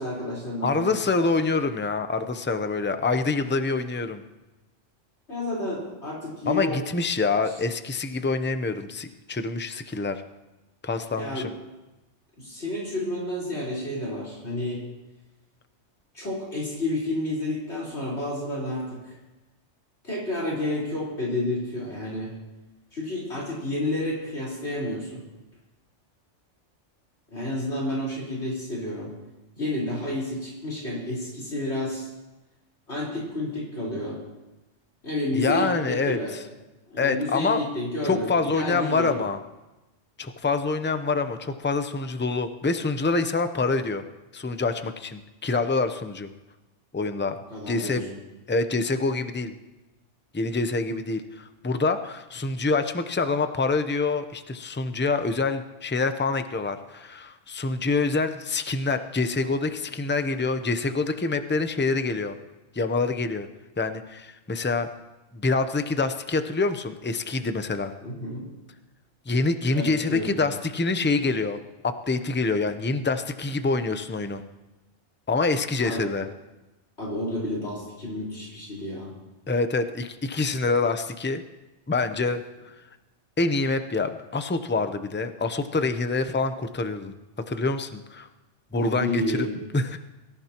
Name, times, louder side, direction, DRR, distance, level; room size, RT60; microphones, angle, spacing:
voice 1, 0.0-0.9 5.3-6.8 11.2-11.5 12.4-14.9 16.1-19.2 20.0-22.3 22.9-25.2 27.3-29.1 29.6-32.1 32.9-34.2 35.0-36.3 36.9-39.2 47.5-48.0 68.0-68.4 69.7-70.3 75.8-76.1 77.0-79.1 88.7-89.5, left 1 dB, 65° left, -6 dB, 4.7 m, -30 dB
voice 2, 0.6-4.2 6.5-10.2 10.8-11.5 35.3-36.2 37.0-37.6 38.0-39.4 40.2-44.0 44.3-46.3 46.9-47.4 47.7-48.0 48.5-49.6 50.3-62.4 62.7-63.5 63.8-64.9 65.3-67.9 69.3-71.6 71.8-74.4 75.3-76.3 79.5-81.4 81.9-82.4 83.4-87.1 87.5-88.3 88.7-89.5 89.7-90.0, left 3 dB, 15° left, 9 dB, 0.5 m, -26 dB
24.0 x 14.5 x 3.0 m, 1.0 s
omnidirectional pair, 1.2 m